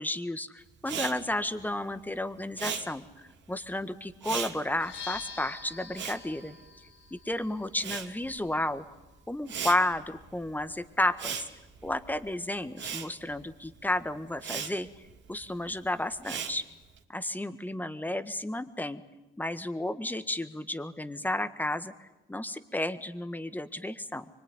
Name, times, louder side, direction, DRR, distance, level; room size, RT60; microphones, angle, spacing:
voice 1, 0.0-6.5 7.1-8.8 9.3-11.5 11.8-14.9 15.3-16.6 17.1-19.0 19.4-24.3, left 1 dB, 10° left, 11 dB, 1.6 m, -32 dB
Respiratory sounds, 0.8-7.3 7.5-17.0, right 7 dB, 65° right, 2.7 m, -39 dB
sound 1, 4.7-12.5, left 6 dB, 80° left, 5.1 m, -49 dB
24.5 x 23.0 x 9.7 m, 1.0 s
cardioid pair, 90°, 20 cm